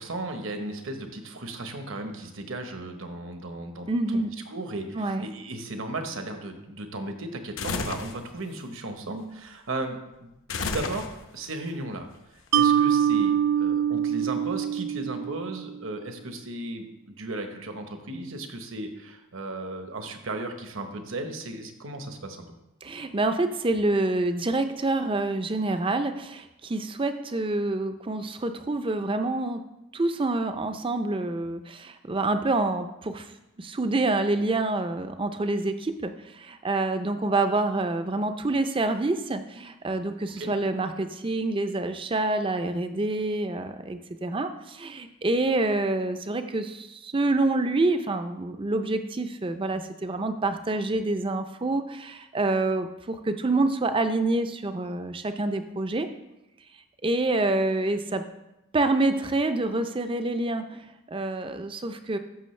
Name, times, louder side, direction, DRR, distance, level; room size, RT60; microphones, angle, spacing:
voice 1, 0.0-10.3 10.6-12.1 12.5-16.9 17.2-22.5 40.4-40.5, right 2 dB, 65° right, 6 dB, 1.1 m, -35 dB
voice 2, 3.9-4.3 4.9-5.2 22.8-29.6 29.9-33.3 33.6-56.1 57.0-58.2 58.7-62.2, right 2 dB, 25° right, 9 dB, 0.5 m, -27 dB
sound 1, 7.6-8.2 10.5-11.4, left 4 dB, 65° left, 0.8 m, -31 dB
Mallet percussion, 12.5-15.8, right 9 dB, 90° right, 0.3 m, -24 dB
13.5 x 6.3 x 3.2 m, 0.95 s
head